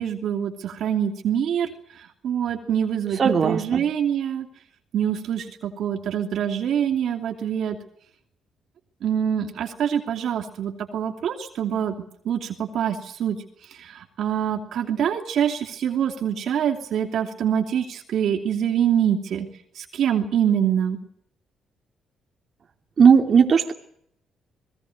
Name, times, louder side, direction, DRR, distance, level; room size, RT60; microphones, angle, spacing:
voice 1, 0.0-1.7 2.0-4.5 4.9-7.8 9.0-11.9 12.2-13.4 13.8-19.5 19.8-21.0, right 9 dB, 70° right, 5 dB, 2.9 m, -25 dB
voice 2, 3.2-3.8 23.0-23.7, right 6 dB, 50° right, 3 dB, 2.7 m, -17 dB
26.0 x 20.0 x 6.6 m, 0.69 s
cardioid pair, 90°, 0 cm